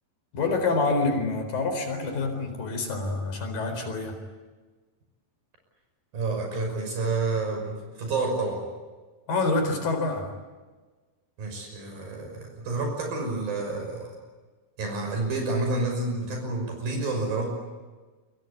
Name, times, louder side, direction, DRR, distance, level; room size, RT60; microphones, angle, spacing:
voice 1, 0.3-4.2 9.3-10.3, left 3 dB, 70° left, 7 dB, 6.0 m, -27 dB
voice 2, 6.1-8.7 11.4-14.2 14.8-17.5, right 3 dB, 75° right, 3 dB, 7.7 m, -29 dB
29.0 x 23.5 x 8.5 m, 1.3 s
omnidirectional pair, 4.1 m